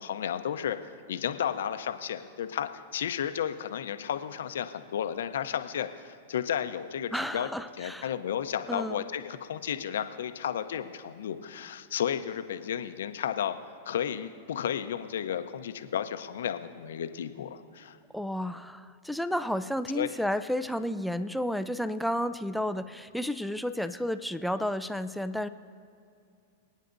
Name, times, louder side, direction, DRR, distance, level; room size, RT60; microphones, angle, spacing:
voice 1, 0.0-7.5 7.8-13.5 13.9-18.0 19.9-20.1, left 9 dB, 80° left, 9 dB, 0.7 m, -33 dB
voice 2, 7.1-8.1 8.7-9.0 18.1-25.5, equal, ahead, 11 dB, 0.4 m, -32 dB
26.5 x 9.2 x 2.6 m, 2.5 s
hypercardioid pair, 130°, 0 cm